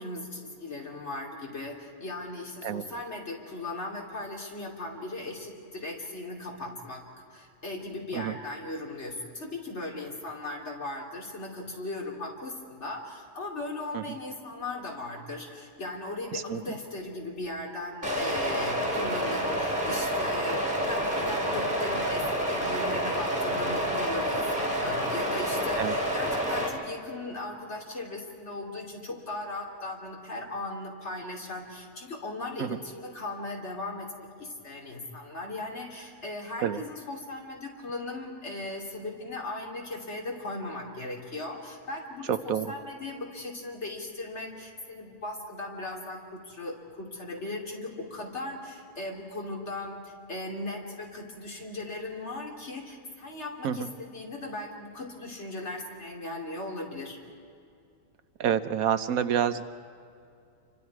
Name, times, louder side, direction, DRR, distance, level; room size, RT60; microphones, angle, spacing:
voice 1, 0.0-7.0 7.3-57.2, left 2 dB, 50° left, -1 dB, 3.4 m, -38 dB
sound 1, 18.0-26.7, equal, 35° right, 3.4 m, -28 dB
voice 2, 42.3-42.7 53.6-53.9 58.4-59.7, right 9 dB, 85° right, 11 dB, 1.3 m, -27 dB
29.0 x 25.0 x 4.8 m, 2.4 s
omnidirectional pair, 1.5 m